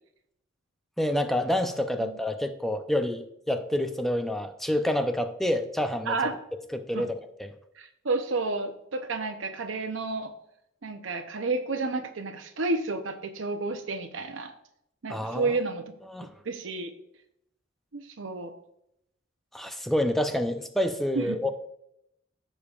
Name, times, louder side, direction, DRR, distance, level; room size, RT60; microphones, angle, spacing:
voice 1, 1.0-6.2 6.7-7.5 15.1-15.5 16.1-16.3 19.5-21.5, left 1 dB, ahead, 6 dB, 0.6 m, -28 dB
voice 2, 7.8-10.3 10.8-14.5 15.0-15.8 16.4-16.9 17.9-18.5 21.1-21.4, right 3 dB, 85° right, 6 dB, 0.7 m, -31 dB
14.5 x 5.2 x 2.4 m, 0.77 s
head